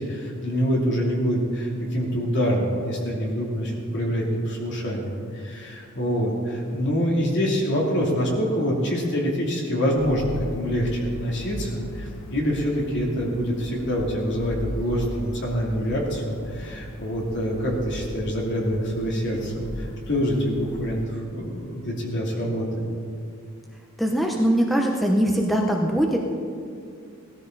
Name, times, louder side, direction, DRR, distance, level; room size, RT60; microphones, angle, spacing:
voice 1, 0.0-22.9, equal, 55° left, -2 dB, 2.9 m, -26 dB
sound 1, 10.0-21.1, equal, 75° left, 1.1 m, -38 dB
voice 2, 24.0-26.2, right 1 dB, ahead, 0 dB, 0.8 m, -21 dB
17.5 x 13.5 x 4.0 m, 2.3 s
head